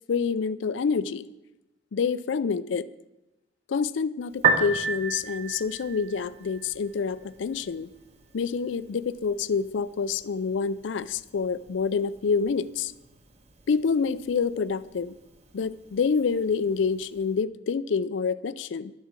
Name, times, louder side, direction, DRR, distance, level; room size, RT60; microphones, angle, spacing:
voice 1, 0.1-1.3 1.9-2.9 3.7-7.9 8.3-12.9 13.7-15.1 15.5-18.9, left 5 dB, 70° left, 16 dB, 0.4 m, -27 dB
Piano, 4.3-17.3, right 4 dB, 35° right, 1.2 m, -35 dB
11.5 x 7.4 x 7.3 m, 0.93 s
head